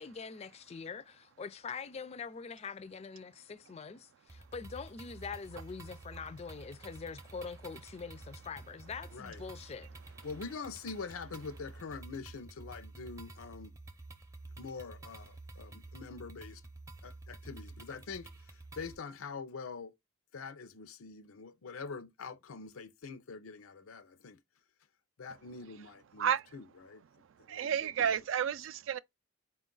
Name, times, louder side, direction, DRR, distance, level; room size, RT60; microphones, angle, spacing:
voice 1, 0.0-9.9, left 5 dB, 30° left, 0.3 m, -44 dB
sound 1, 4.3-18.9, right 2 dB, 15° right, 0.5 m, -50 dB
voice 2, 10.2-13.7 14.6-16.6 17.0-18.3 18.8-19.9 20.3-24.4 25.2-27.0 27.5-27.8, left 4 dB, 90° left, 0.6 m, -44 dB
voice 3, 27.5-29.0, right 8 dB, 65° right, 0.4 m, -31 dB
4.4 x 2.4 x 3.8 m
head